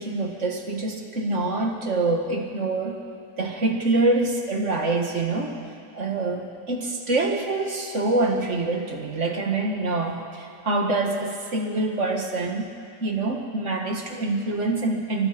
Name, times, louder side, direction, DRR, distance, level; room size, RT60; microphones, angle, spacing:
voice 1, 0.0-3.0 3.4-5.6 5.9-12.7 13.0-15.3, right 2 dB, 45° right, 3 dB, 2.0 m, -25 dB
25.0 x 21.5 x 5.2 m, 2.4 s
omnidirectional pair, 1.8 m